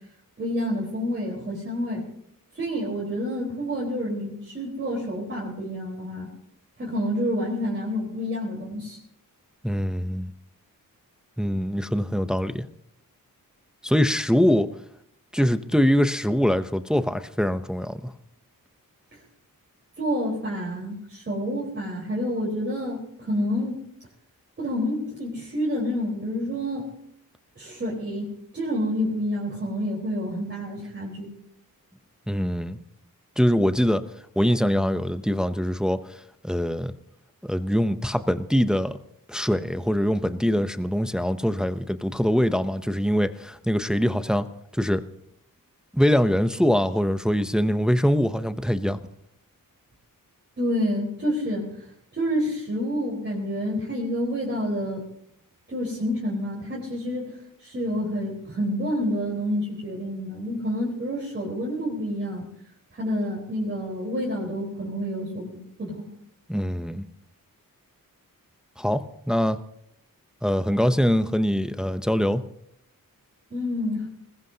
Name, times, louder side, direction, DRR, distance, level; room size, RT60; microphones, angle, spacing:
voice 1, 0.4-2.0 2.5-6.3 6.8-9.0 20.0-23.8 24.6-26.9 27.6-31.3 50.6-51.6 52.1-55.0 55.7-62.5 62.9-66.1 73.5-74.1, equal, 30° right, -4 dB, 4.2 m, -28 dB
voice 2, 9.6-10.3 11.4-12.7 13.8-14.7 15.3-18.1 32.3-32.8 33.4-34.0 34.4-36.9 37.4-39.0 39.3-44.5 44.7-45.0 45.9-49.0 66.5-67.0 68.8-69.6 70.4-72.4, equal, ahead, 10 dB, 0.6 m, -23 dB
20.5 x 20.5 x 2.8 m, 0.71 s
wide cardioid pair, 130°, 35 cm